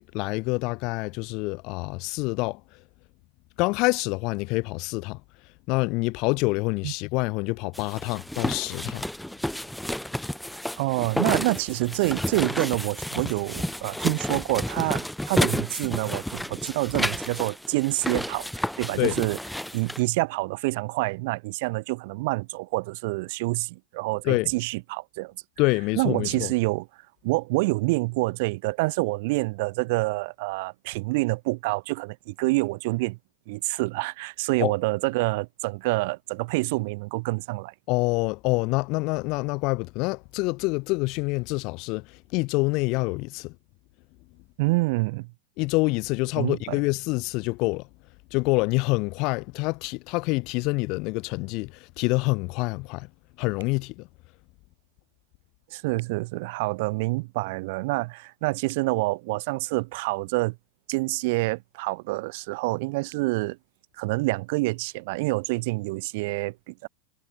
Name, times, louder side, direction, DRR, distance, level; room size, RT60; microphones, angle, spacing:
voice 1, 0.0-2.8 3.6-5.2 5.7-9.1 18.9-19.2 24.2-24.5 25.6-26.5 34.6-34.7 37.9-43.6 45.6-47.9 48.3-53.1 53.4-54.1, left 26 dB, 50° left, 0.6 m, -26 dB
sound 1, 7.7-20.0, left 1 dB, ahead, 0.9 m, -31 dB
voice 2, 10.8-19.4 19.7-25.3 26.0-26.9 27.2-33.2 33.5-37.7 44.6-45.3 46.4-46.8 55.7-60.6 60.9-63.6 64.0-66.9, right 24 dB, 60° right, 0.5 m, -27 dB
sound 2, 53.6-53.8 55.9-56.1 58.6-58.9 60.9-61.1 63.1-63.3, right 13 dB, 75° right, 3.8 m, -51 dB
supercardioid pair, 130°, 0 cm